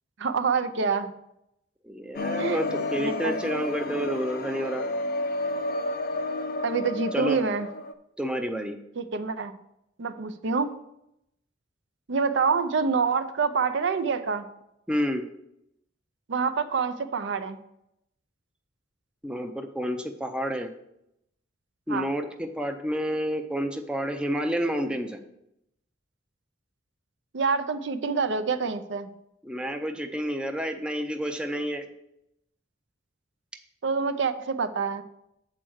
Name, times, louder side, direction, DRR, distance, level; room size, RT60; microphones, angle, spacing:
voice 1, 0.2-1.1 2.4-2.6 3.0-3.4 6.6-7.7 9.0-9.6 10.0-10.7 12.1-14.5 16.3-17.6 21.9-22.1 27.3-29.1 33.8-35.0, right 5 dB, 65° right, 8 dB, 0.6 m, -26 dB
voice 2, 1.8-4.8 7.1-7.4 8.2-8.8 14.9-15.2 19.2-20.7 21.9-25.2 29.4-31.9, equal, 5° right, 5 dB, 0.5 m, -29 dB
sound 1, 2.2-7.9, left 2 dB, 45° left, 0.5 m, -31 dB
7.5 x 4.5 x 6.3 m, 0.80 s
head